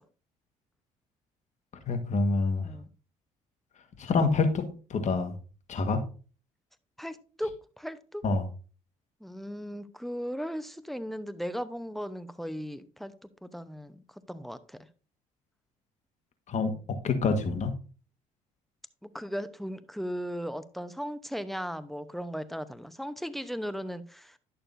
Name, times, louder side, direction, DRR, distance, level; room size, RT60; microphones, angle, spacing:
voice 1, 1.9-2.8 4.0-4.6 4.9-5.3 5.7-6.0 8.2-8.4 16.5-16.7 17.0-17.7, left 4 dB, 50° left, 7 dB, 1.6 m, -26 dB
voice 2, 7.0-8.2 9.2-14.8 19.0-24.4, equal, ahead, 12 dB, 0.9 m, -37 dB
11.0 x 6.6 x 2.7 m, 0.37 s
supercardioid pair, 70°, 15 cm